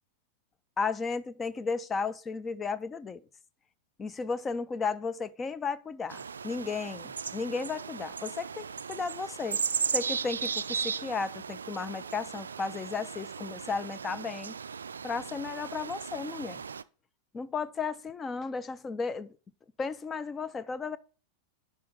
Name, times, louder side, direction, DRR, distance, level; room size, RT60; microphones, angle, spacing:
voice 1, 0.8-3.2 4.0-9.6 9.9-14.6 15.0-16.6 17.3-19.4 19.8-21.0, left 5 dB, 20° left, 0.6 m, -34 dB
sound 1, 6.1-16.8, right 6 dB, 70° right, 0.3 m, -36 dB
10.5 x 5.5 x 3.5 m
figure-of-eight pair, 90°, 0 cm